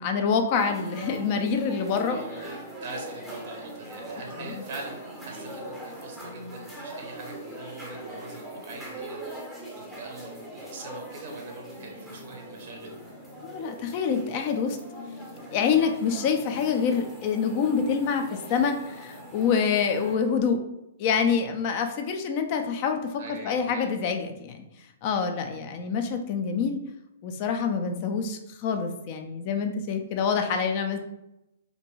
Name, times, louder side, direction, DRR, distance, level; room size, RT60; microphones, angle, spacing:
voice 1, 0.0-2.2 4.4-4.5 13.4-14.8 15.5-20.6 21.0-24.6 25.0-26.8 27.2-31.0, left 6 dB, 40° left, 6 dB, 0.4 m, -26 dB
sound 1, 0.5-20.2, right 1 dB, 5° left, 0.7 m, -41 dB
voice 2, 2.1-9.4 9.8-12.9 23.2-23.9, right 3 dB, 50° right, 2 dB, 0.5 m, -43 dB
2.6 x 2.2 x 3.0 m, 0.89 s
hypercardioid pair, 125°, 0 cm